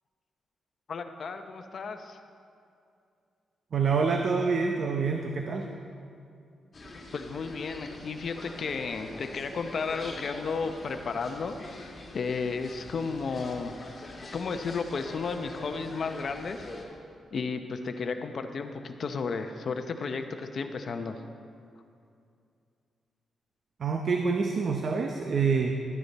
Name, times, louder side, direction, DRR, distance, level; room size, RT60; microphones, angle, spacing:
voice 1, 0.9-2.2 7.1-13.7 14.3-16.6 17.3-21.2, left 4 dB, 55° left, 6 dB, 0.7 m, -33 dB
voice 2, 3.7-5.7 23.8-25.8, right 5 dB, 55° right, 3 dB, 0.7 m, -27 dB
sound 1, 6.7-16.8, left 2 dB, 35° left, 1.9 m, -44 dB
13.0 x 10.0 x 4.2 m, 2.4 s
cardioid pair, 105°, 0 cm